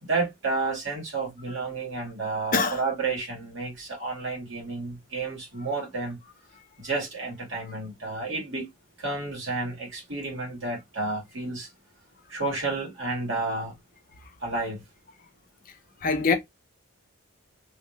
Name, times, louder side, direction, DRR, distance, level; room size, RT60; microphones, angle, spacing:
voice 1, 0.0-6.2 6.8-8.7 9.0-11.7 12.3-13.8 14.4-14.8, right 3 dB, 60° right, 2.0 m, -31 dB
voice 2, 2.5-2.8 16.0-16.3, left 4 dB, 40° left, 0.5 m, -23 dB
3.2 x 2.6 x 2.9 m
head